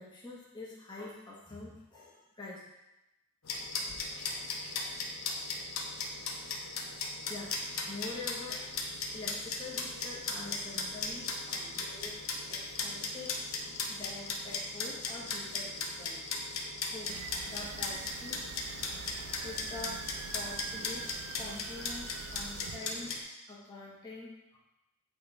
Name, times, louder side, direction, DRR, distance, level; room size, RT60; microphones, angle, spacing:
voice 1, 0.0-2.6 7.3-16.2 16.9-18.4 19.4-21.1 21.4-24.6, left 3 dB, 20° left, -5 dB, 1.4 m, -46 dB
sound 1, 3.4-23.2, left 3 dB, 70° left, 0.9 m, -38 dB
sound 2, 17.1-22.8, right 8 dB, 65° right, 0.3 m, -45 dB
8.6 x 3.4 x 4.2 m, 0.94 s
head